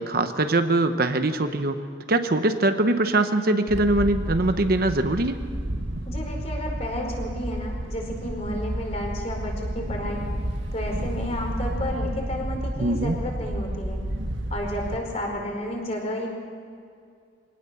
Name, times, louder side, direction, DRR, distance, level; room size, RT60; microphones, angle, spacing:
voice 1, 0.0-1.8 2.1-5.4 12.8-13.2, right 2 dB, 50° right, 8 dB, 1.0 m, -22 dB
Wind, 3.7-15.0, right 1 dB, 80° right, 1.7 m, -31 dB
voice 2, 6.0-10.2 10.7-14.0 14.5-16.3, left 1 dB, 35° left, 1 dB, 4.6 m, -32 dB
23.5 x 18.5 x 7.0 m, 2.4 s
head